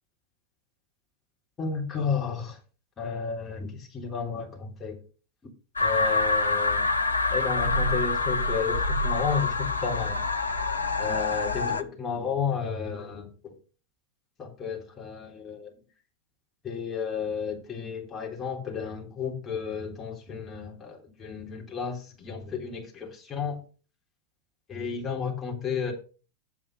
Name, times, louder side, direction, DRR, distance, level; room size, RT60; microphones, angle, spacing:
voice 1, 1.6-2.6 3.0-5.0 5.8-6.9 7.3-10.2 11.0-13.5 14.4-15.7 16.6-23.6 24.7-25.9, left 6 dB, 20° left, 3.4 m, -32 dB
sound 1, 5.8-11.8, left 3 dB, 80° left, 0.8 m, -26 dB
8.7 x 7.4 x 5.5 m
figure-of-eight pair, 90°, 0 cm